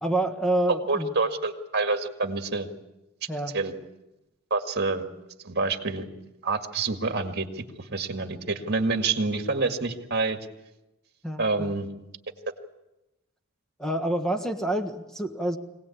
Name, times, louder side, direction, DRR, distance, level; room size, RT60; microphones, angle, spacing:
voice 1, 0.0-1.1 3.3-3.6 11.2-11.8 13.8-15.6, right 1 dB, 5° left, 6 dB, 1.4 m, -27 dB
voice 2, 0.9-2.7 3.5-3.7 4.5-5.1 5.4-6.0 6.4-10.4 11.4-11.9, right 3 dB, 50° right, 5 dB, 2.0 m, -27 dB
24.0 x 18.0 x 8.5 m, 0.99 s
head